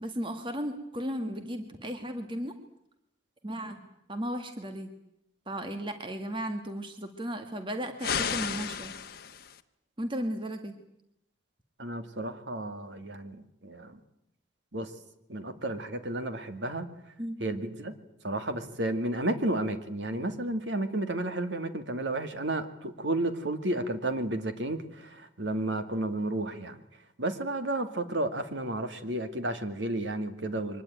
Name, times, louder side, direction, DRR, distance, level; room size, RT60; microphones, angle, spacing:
voice 1, 0.0-2.5 3.4-3.8 4.1-4.9 5.5-8.9 10.0-10.7 17.2-17.4, equal, 25° right, 7 dB, 1.8 m, -35 dB
sound 1, 8.0-9.6, left 7 dB, 55° left, 1.2 m, -33 dB
voice 2, 11.8-14.0 14.7-14.9 15.3-16.9 17.4-17.9 18.2-26.8 27.2-30.8, right 1 dB, 75° right, 9 dB, 2.3 m, -32 dB
24.0 x 20.0 x 9.2 m, 0.80 s
head